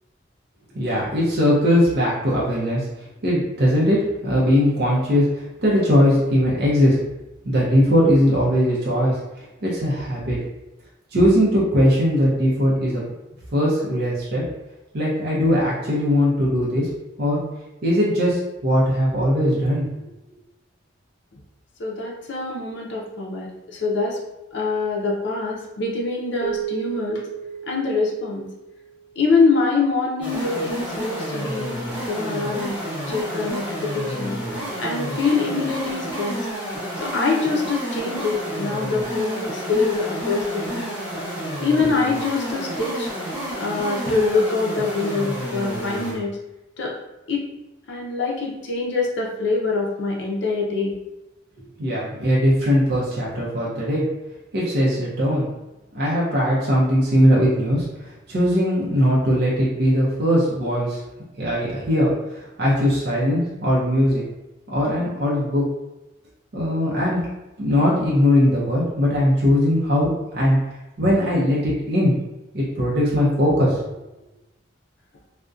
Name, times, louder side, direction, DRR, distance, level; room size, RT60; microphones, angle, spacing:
voice 1, 0.7-2.9 3.2-7.0 7.4-10.4 11.1-13.1 13.5-14.4 14.9-16.9 17.2-17.4 17.8-20.0 51.8-54.1 54.5-55.5 55.9-61.0 61.4-64.2 64.7-65.7 66.5-67.3 67.6-70.6 71.0-72.1 72.5-73.8, equal, 50° right, -6 dB, 0.5 m, -20 dB
voice 2, 21.8-24.2 24.5-27.2 27.7-28.5 29.2-31.8 32.1-32.8 33.1-34.4 34.8-36.4 37.0-40.8 41.6-43.1 43.6-46.4 46.8-46.9 47.3-47.4 47.9-50.9, left 4 dB, 60° left, -2 dB, 0.5 m, -24 dB
Keyboard (musical), 26.4-29.4, right 10 dB, 75° right, 0.9 m, -34 dB
sound 1, 30.2-46.2, equal, 10° right, 0.7 m, -30 dB
2.5 x 2.1 x 2.3 m, 1.0 s
head